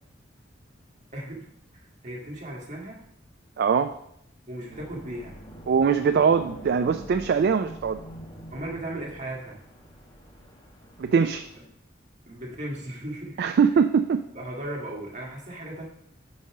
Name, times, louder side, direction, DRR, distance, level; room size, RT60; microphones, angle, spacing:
voice 1, 1.1-1.4 2.0-3.0 4.5-5.3 8.5-9.6 12.3-13.4 14.3-15.9, right 1 dB, 40° right, -2 dB, 1.8 m, -36 dB
voice 2, 3.6-3.9 5.7-8.0 11.0-11.4 13.4-14.2, right 6 dB, 55° right, 9 dB, 0.3 m, -22 dB
sound 1, 4.7-11.6, right 1 dB, 25° left, 1.0 m, -45 dB
5.5 x 5.4 x 4.7 m, 0.72 s
head